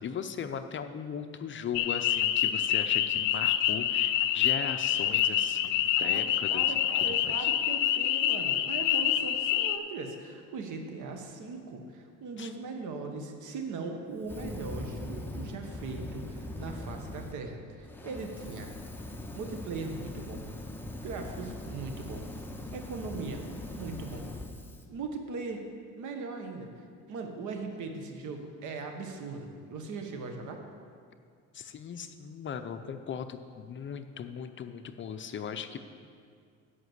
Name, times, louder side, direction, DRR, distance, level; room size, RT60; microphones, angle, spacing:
voice 1, 0.0-6.8 7.1-7.5 12.4-12.5 31.5-35.8, left 7 dB, 40° left, 9 dB, 0.6 m, -38 dB
sound 1, 1.7-9.8, left 11 dB, 85° left, 0.5 m, -27 dB
voice 2, 6.0-18.7 19.3-20.5 21.0-22.3 22.7-23.4 23.7-24.2 24.9-25.6 26.0-26.7 27.1-30.6, right 4 dB, 70° right, 4 dB, 1.3 m, -39 dB
Fire, 14.2-17.4 17.8-24.8, left 1 dB, 5° left, 0.8 m, -41 dB
7.9 x 5.9 x 7.9 m, 2.2 s
cardioid pair, 105°, 31 cm